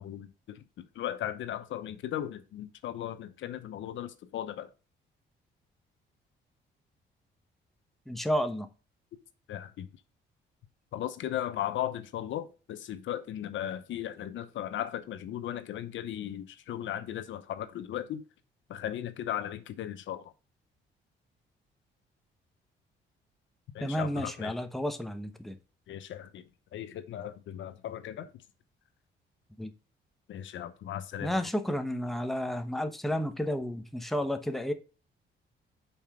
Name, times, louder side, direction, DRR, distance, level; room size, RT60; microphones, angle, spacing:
voice 1, 0.0-4.7 9.5-9.9 10.9-18.2 18.7-20.3 23.7-24.5 25.9-26.4 26.7-28.3 30.3-31.4, left 11 dB, 75° left, 0.8 m, -37 dB
voice 2, 8.1-8.7 23.8-25.6 29.6-29.7 31.2-34.7, equal, ahead, 0.9 m, -31 dB
5.7 x 4.3 x 4.9 m
cardioid pair, 90°, 20 cm